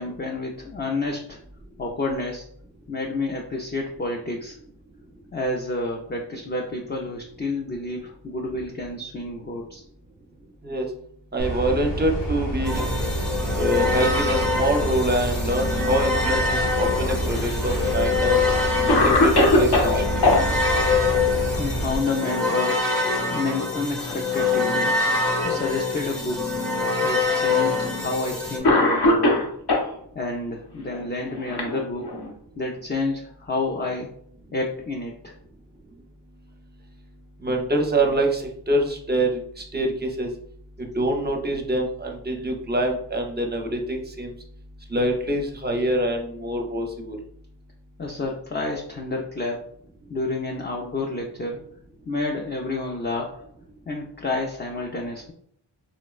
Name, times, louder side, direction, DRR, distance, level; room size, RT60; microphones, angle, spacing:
voice 1, 0.0-1.4 1.8-2.5 2.9-4.6 5.3-9.8 21.6-22.8 23.3-24.9 25.4-26.5 27.0-29.5 30.1-32.1 32.6-34.1 34.5-35.3 48.0-49.7 50.1-51.6 52.1-53.4 53.9-55.3, left 2 dB, 25° left, 0 dB, 0.4 m, -29 dB
voice 2, 11.3-12.8 13.6-18.4 18.9-20.4 37.4-40.3 40.8-44.3 44.9-47.2, right 1 dB, 25° right, 2 dB, 0.5 m, -25 dB
sound 1, 11.4-22.0, right 1 dB, 85° left, 1.5 m, -28 dB
sound 2, 12.6-28.6, left 4 dB, ahead, 0.9 m, -25 dB
Cough, 17.1-17.9 18.5-18.6 18.9-20.4 22.3-22.7 23.0-23.2 24.0-24.7 25.5-25.6 26.6-26.7 27.8-28.0 28.6-29.9 30.9-32.3, left 2 dB, 65° left, 0.8 m, -21 dB
4.0 x 2.1 x 2.4 m, 0.65 s
wide cardioid pair, 60°, 42 cm